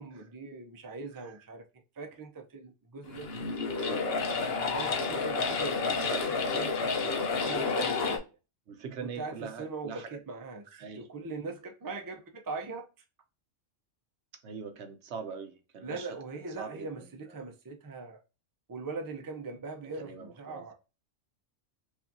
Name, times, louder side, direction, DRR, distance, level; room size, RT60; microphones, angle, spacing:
voice 1, 0.0-1.6 2.0-3.3 4.3-4.4 4.7-6.1 6.4-8.2 9.0-12.9 15.8-18.2 18.7-20.7, right 4 dB, 25° right, 0.4 m, -41 dB
sound 1, 3.0-8.2, left 4 dB, 60° left, 0.9 m, -30 dB
voice 2, 3.8-4.6 5.8-6.4 8.7-10.2 10.8-11.1 14.4-16.1 16.6-17.1 20.0-20.7, right 5 dB, 70° right, 1.0 m, -42 dB
4.7 x 2.5 x 2.7 m
omnidirectional pair, 1.3 m